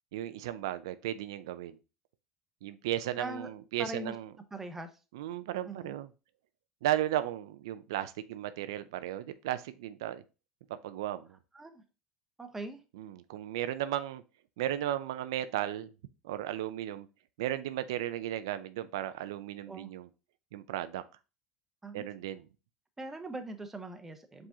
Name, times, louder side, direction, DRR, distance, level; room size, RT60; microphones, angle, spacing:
voice 1, 0.1-1.8 2.6-4.4 5.1-6.1 6.8-10.2 10.7-11.3 12.9-14.2 14.6-15.9 16.2-17.1 17.4-20.1 20.5-21.0 21.9-22.5, right 12 dB, 90° right, 12 dB, 0.3 m, -35 dB
voice 2, 3.2-3.5 3.8-4.1 4.5-4.9 5.7-5.9 11.5-11.8 12.4-12.8 19.7-19.9 21.8-22.1 23.0-24.5, right 2 dB, 15° right, 7 dB, 0.7 m, -41 dB
4.8 x 3.6 x 2.7 m, 0.31 s
supercardioid pair, 110°, 2 cm